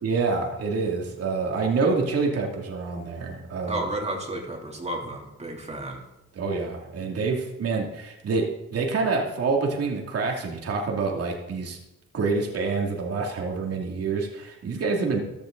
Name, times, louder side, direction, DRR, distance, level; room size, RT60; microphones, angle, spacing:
voice 1, 0.0-3.9 6.3-11.8 12.1-15.2, right 4 dB, 55° right, 0 dB, 2.5 m, -27 dB
voice 2, 3.7-6.0, right 1 dB, 20° right, 0 dB, 3.1 m, -32 dB
14.5 x 12.0 x 3.9 m, 0.92 s
cardioid pair, 90°, 30 cm